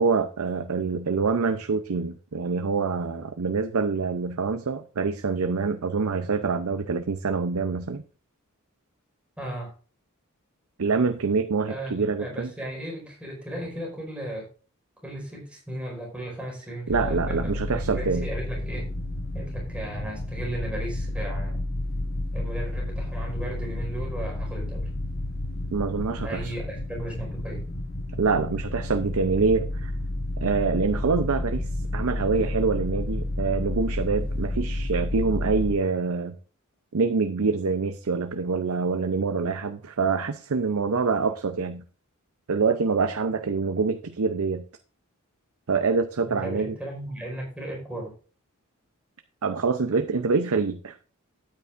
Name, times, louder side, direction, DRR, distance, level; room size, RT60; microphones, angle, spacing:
voice 1, 0.0-8.0 10.8-12.5 16.9-18.3 25.7-26.5 28.2-29.9 30.4-36.4 36.9-41.8 42.5-44.6 45.7-46.7 49.4-51.0, right 4 dB, 85° right, 8 dB, 0.6 m, -25 dB
voice 2, 9.4-9.7 11.7-14.5 15.0-18.9 19.3-21.6 22.3-24.9 26.2-27.6 46.3-48.1, right 1 dB, 5° right, -2 dB, 4.7 m, -36 dB
sound 1, 16.9-35.8, left 1 dB, 50° left, 1.4 m, -31 dB
13.0 x 9.6 x 2.5 m, 0.38 s
head